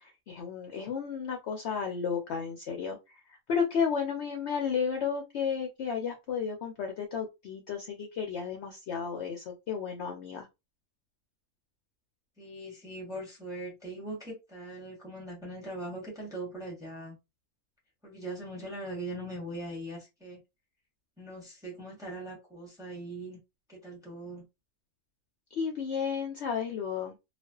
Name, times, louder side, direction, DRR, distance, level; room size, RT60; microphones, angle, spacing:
voice 1, 0.0-10.5 25.5-27.2, left 6 dB, 65° left, 0.7 m, -33 dB
voice 2, 12.4-17.2 18.0-20.4 21.2-23.4 23.7-24.4, right 1 dB, 5° right, 0.8 m, -41 dB
2.4 x 2.3 x 2.3 m
omnidirectional pair, 1.5 m